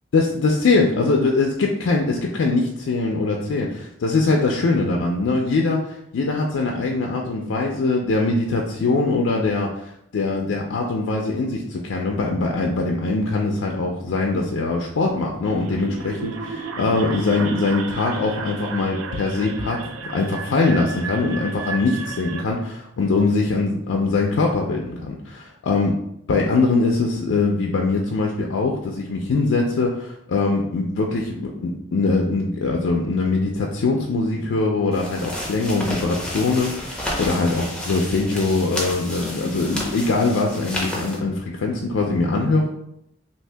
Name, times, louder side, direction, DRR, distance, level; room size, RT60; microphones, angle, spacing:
voice 1, 0.1-9.7 10.1-19.8 20.1-26.0 26.3-42.7, left 3 dB, 90° left, 0 dB, 0.4 m, -22 dB
sound 1, 15.4-22.4, right 4 dB, 85° right, 0.4 m, -33 dB
sound 2, 34.9-41.2, left 1 dB, 5° left, 0.5 m, -31 dB
2.7 x 2.7 x 3.3 m, 0.78 s
head